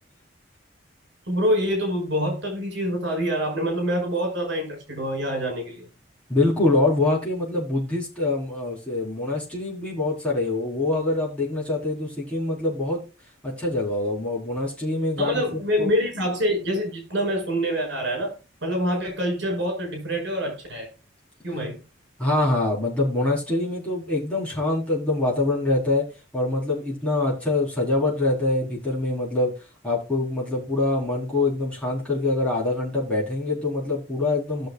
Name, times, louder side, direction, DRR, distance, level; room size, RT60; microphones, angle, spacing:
voice 1, 1.3-5.9 15.2-18.3 18.6-20.9 21.4-21.8, equal, 65° right, 5.1 m, -26 dB
voice 2, 6.3-13.0 13.4-15.9 22.2-26.1 26.3-29.6 29.8-34.7, left 2 dB, 5° left, 4.1 m, -24 dB
17.5 x 6.4 x 2.3 m
head